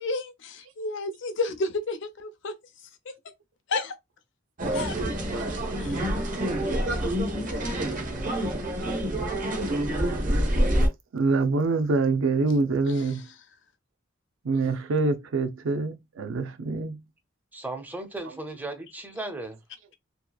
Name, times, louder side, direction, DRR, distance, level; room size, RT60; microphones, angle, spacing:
voice 1, 0.0-2.5 3.7-3.9 4.7-5.0 5.8-6.0, left 3 dB, 65° left, 0.5 m, -31 dB
sound 1, 4.6-10.9, right 1 dB, 45° right, 0.7 m, -27 dB
voice 2, 11.1-13.3 14.4-17.0 18.2-18.4, right 3 dB, 75° right, 0.5 m, -25 dB
voice 3, 17.5-19.6, right 2 dB, 10° right, 0.5 m, -37 dB
2.8 x 2.3 x 2.3 m
head